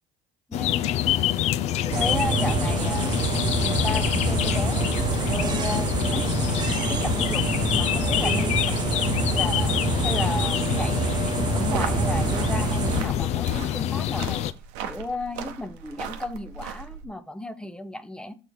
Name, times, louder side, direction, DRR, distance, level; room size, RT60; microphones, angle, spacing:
sound 1, 0.5-14.5, left 12 dB, 60° left, 0.4 m, -26 dB
voice 1, 0.5-1.3 1.8-3.1 3.6-6.5 6.9-9.7 10.0-14.4 14.8-18.3, left 1 dB, 5° left, 10 dB, 0.6 m, -34 dB
sound 2, 1.9-13.0, right 8 dB, 35° right, 0.3 m, -27 dB
sound 3, 11.5-17.1, right 7 dB, 80° right, 0.8 m, -38 dB
6.8 x 4.0 x 4.5 m, 0.34 s
supercardioid pair, 75°, 13 cm